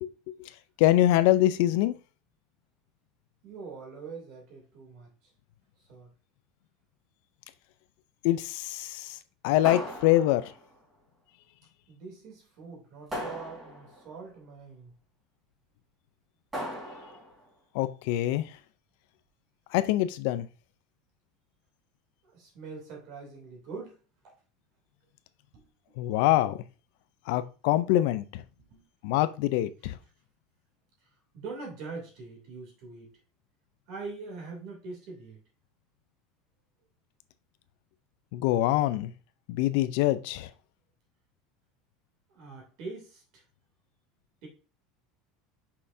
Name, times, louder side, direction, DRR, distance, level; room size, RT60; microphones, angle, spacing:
voice 1, 0.0-0.5 0.8-1.9 8.2-9.2 9.4-10.5 17.7-18.5 19.7-20.5 26.0-26.6 27.3-28.4 29.0-30.0 38.3-39.1 39.5-40.5, left 14 dB, 65° left, 0.5 m, -25 dB
voice 2, 3.4-5.1 5.8-6.1 11.9-14.9 22.2-24.3 25.5-26.2 28.6-28.8 31.0-31.1 31.3-33.1 33.9-35.4 42.3-43.4 44.4-44.5, right 4 dB, 50° right, 2.8 m, -43 dB
sound 1, 9.6-10.7 13.1-14.1 16.5-17.4, equal, 15° right, 3.6 m, -38 dB
6.4 x 5.6 x 2.7 m
cardioid pair, 165°, 0 cm